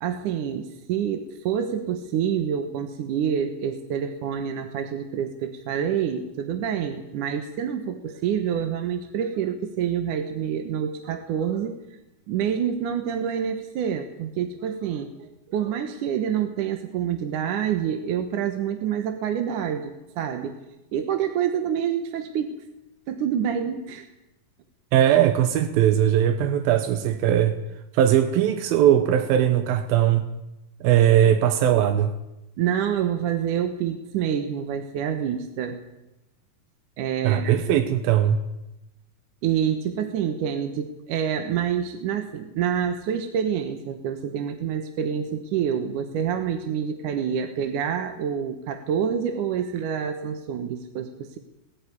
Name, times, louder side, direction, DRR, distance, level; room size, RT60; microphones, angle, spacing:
voice 1, 0.0-11.8 12.3-20.6 20.9-22.6 23.1-24.1 32.6-35.8 37.0-37.6 39.4-51.4, right 8 dB, 65° right, 7 dB, 2.5 m, -27 dB
voice 2, 24.9-27.6 27.9-30.3 30.8-32.1 37.2-38.4, right 10 dB, 85° right, 8 dB, 2.9 m, -19 dB
20.0 x 15.0 x 9.8 m, 0.94 s
omnidirectional pair, 4.1 m